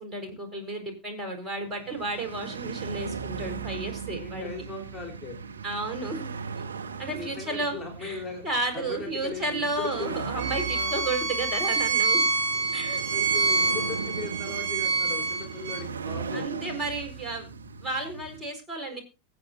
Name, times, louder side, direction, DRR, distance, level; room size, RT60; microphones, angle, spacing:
voice 1, 0.0-4.5 5.6-6.3 7.0-7.7 8.0-12.3 12.7-13.0 16.3-17.5 17.8-19.0, right 2 dB, 15° right, 3 dB, 4.3 m, -32 dB
sound 1, 1.6-18.4, right 5 dB, 75° right, 1.4 m, -38 dB
voice 2, 4.1-5.4 7.1-8.5 8.7-10.2 10.6-11.0 13.1-16.5 18.9-19.0, left 3 dB, 10° left, 2 dB, 3.5 m, -38 dB
Bowed string instrument, 10.4-15.8, right 4 dB, 50° right, 4.2 m, -26 dB
23.5 x 8.1 x 2.6 m, 0.29 s
figure-of-eight pair, 90°, 0 cm